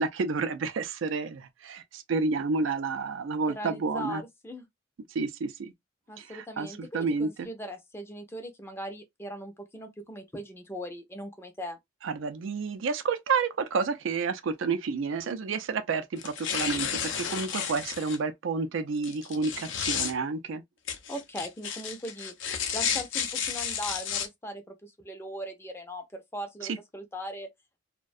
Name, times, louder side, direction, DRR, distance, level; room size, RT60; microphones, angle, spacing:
voice 1, 0.0-4.2 5.1-5.7 6.2-7.5 12.0-20.6 26.6-26.8, right 4 dB, 75° right, 0.4 m, -30 dB
voice 2, 3.5-4.6 6.1-11.8 21.1-22.3 22.7-27.5, equal, 10° left, 0.4 m, -39 dB
sound 1, 16.2-18.2 19.0-20.1 20.9-24.3, left 7 dB, 70° left, 0.5 m, -32 dB
2.3 x 2.1 x 2.5 m
head